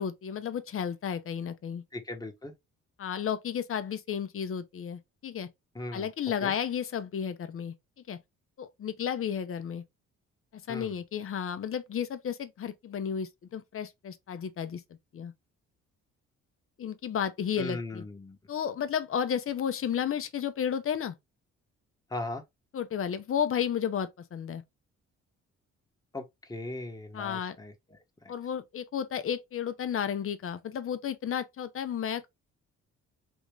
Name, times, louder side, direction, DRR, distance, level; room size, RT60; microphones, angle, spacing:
voice 1, 0.0-1.8 3.0-5.5 5.9-7.7 8.1-8.2 8.6-9.8 10.5-14.8 15.1-15.3 16.8-18.0 18.5-21.2 22.7-24.6 27.1-27.6 28.3-32.3, left 8 dB, 45° left, 0.7 m, -32 dB
voice 2, 1.9-2.5 5.7-6.1 6.4-6.5 10.7-11.0 17.6-18.4 22.1-22.4 26.1-27.7 28.2-28.3, left 2 dB, 10° left, 1.2 m, -38 dB
3.6 x 2.5 x 3.2 m
cardioid pair, 90°, 30 cm